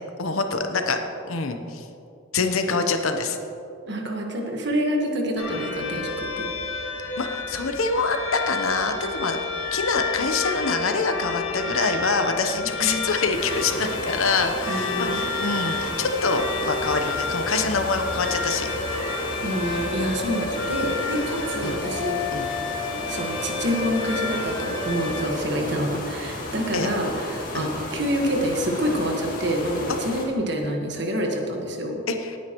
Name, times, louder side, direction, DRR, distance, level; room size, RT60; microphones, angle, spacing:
voice 1, 0.2-1.0 1.3-1.9 2.3-3.4 7.2-9.4 9.7-19.1 21.6-21.8 22.3-22.5 26.7-26.9 27.5-27.7 32.1-32.4, left 4 dB, 85° left, 6 dB, 0.9 m, -25 dB
voice 2, 3.9-6.5 12.8-13.1 14.7-15.3 19.4-22.6 22.9-32.0, equal, 55° right, 1 dB, 1.5 m, -27 dB
sound 1, 5.4-25.3, left 3 dB, 70° left, 1.9 m, -30 dB
sound 2, 13.3-30.2, left 1 dB, 40° left, 2.5 m, -34 dB
18.5 x 9.5 x 3.1 m, 2.6 s
head